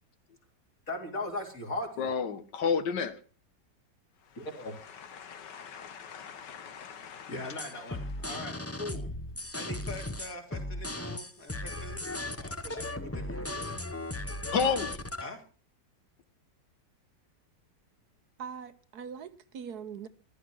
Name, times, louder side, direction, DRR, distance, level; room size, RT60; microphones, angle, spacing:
voice 1, 0.9-2.1 4.4-4.8 7.3-9.1 9.6-12.1 12.4-13.8 15.2-15.4, left 1 dB, 50° left, 3.8 m, -40 dB
voice 2, 2.0-3.2 5.1-7.5 14.5-15.0, left 6 dB, 80° left, 1.8 m, -32 dB
sound 1, 7.6-15.2, left 2 dB, 15° left, 0.5 m, -37 dB
voice 3, 18.4-20.1, right 7 dB, 65° right, 1.4 m, -42 dB
14.5 x 12.0 x 6.2 m
omnidirectional pair, 1.8 m